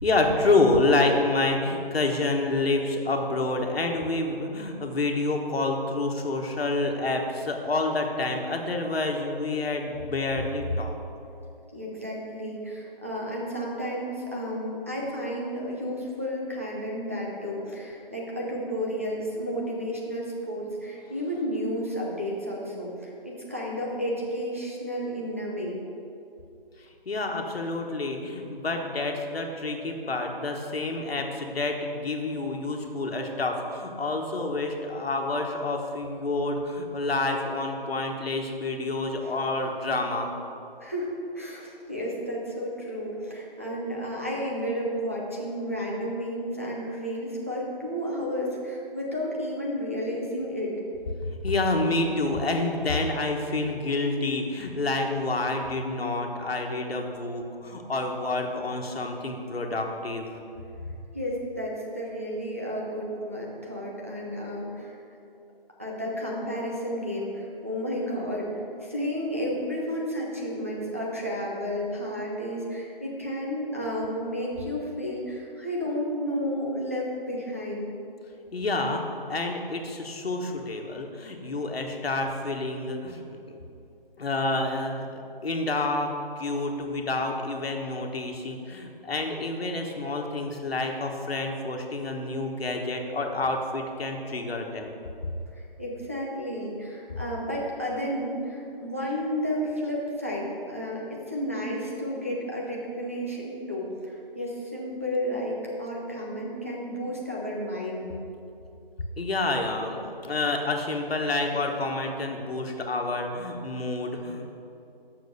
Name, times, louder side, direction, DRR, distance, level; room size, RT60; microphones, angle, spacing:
voice 1, 0.0-10.9 27.1-40.3 51.4-60.3 78.5-79.0 79.3-83.6 84.2-94.9 109.2-114.5, left 2 dB, 85° left, 2 dB, 1.3 m, -28 dB
voice 2, 11.7-25.8 39.2-39.3 40.8-50.7 61.1-65.0 65.8-77.9 95.5-108.2, equal, 15° right, -5 dB, 0.6 m, -32 dB
6.5 x 6.4 x 6.7 m, 2.7 s
hypercardioid pair, 170°, 30 cm